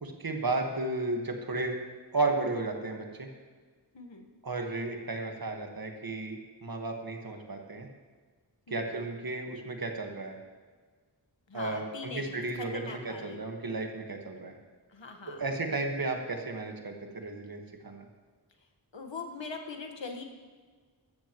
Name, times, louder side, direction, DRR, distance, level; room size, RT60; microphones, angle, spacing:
voice 1, 0.0-1.8 2.1-3.3 4.4-7.9 8.7-10.4 11.5-14.5 15.3-18.1, right 2 dB, 50° right, 3 dB, 1.6 m, -33 dB
voice 2, 3.9-4.3 8.7-9.0 11.5-13.4 14.9-15.4 18.9-20.2, left 4 dB, 85° left, 4 dB, 1.5 m, -42 dB
15.5 x 13.0 x 3.1 m, 1.5 s
wide cardioid pair, 75°, 44 cm